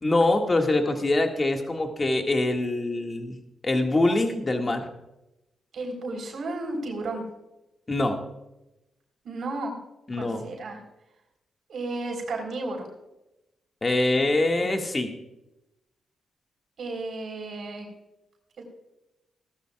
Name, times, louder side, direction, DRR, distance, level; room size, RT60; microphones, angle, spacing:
voice 1, 0.0-3.4 3.6-4.9 7.9-8.2 10.1-10.4 13.8-15.1, left 2 dB, 35° left, 3 dB, 1.9 m, -24 dB
voice 2, 5.7-7.2 9.2-9.8 10.2-10.8 11.7-12.9 16.8-17.9 18.6-18.7, right 2 dB, 65° right, 1 dB, 3.9 m, -33 dB
17.5 x 13.0 x 2.4 m, 0.92 s
cardioid pair, 60°, 0 cm